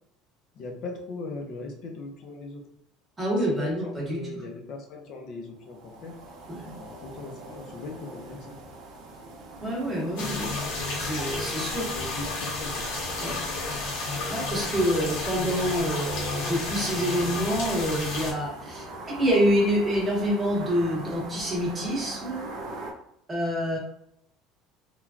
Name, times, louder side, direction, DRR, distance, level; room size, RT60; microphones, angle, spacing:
voice 1, 0.5-2.6 3.4-6.1 6.8-8.6 11.4-12.9, left 3 dB, 45° left, 3 dB, 0.5 m, -39 dB
voice 2, 3.2-4.4 6.5-6.7 9.6-10.5 11.0-11.8 13.2-13.3 14.3-22.5 23.3-23.8, equal, 10° right, -4 dB, 0.9 m, -27 dB
sound 1, 5.6-22.9, right 2 dB, 60° right, 0.7 m, -41 dB
sound 2, 10.2-18.3, left 3 dB, 85° left, 1.2 m, -32 dB
3.1 x 2.2 x 2.4 m, 0.74 s
cardioid pair, 170°, 0 cm